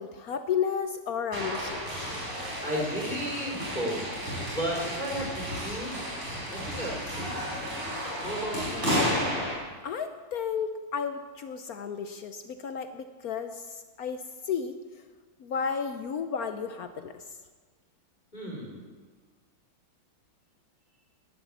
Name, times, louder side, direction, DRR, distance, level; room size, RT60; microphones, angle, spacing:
voice 1, 0.0-1.8 9.8-14.7 15.4-17.2, left 7 dB, 65° left, 9 dB, 0.9 m, -33 dB
sound 1, 1.3-9.5, equal, 35° right, 4.9 m, -32 dB
voice 2, 2.6-4.0 4.4-8.9 18.3-18.8, equal, 20° left, -2 dB, 3.9 m, -34 dB
11.5 x 11.0 x 7.1 m, 1.5 s
omnidirectional pair, 2.2 m